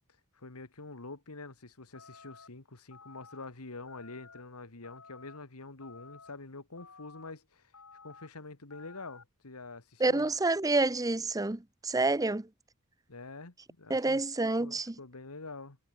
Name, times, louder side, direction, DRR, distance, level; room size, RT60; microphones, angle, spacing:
voice 1, 0.4-7.7 8.0-10.3 13.1-14.2 14.6-15.8, left 3 dB, 85° left, 2.0 m, -46 dB
sound 1, 1.9-2.5 2.9-3.4 3.9-4.4 4.8-5.4 5.8-6.3 6.8-7.3 7.7-8.3 8.7-9.2, left 5 dB, 65° left, 6.8 m, -53 dB
voice 2, 10.0-12.5 13.9-14.9, right 2 dB, 15° right, 0.7 m, -28 dB
head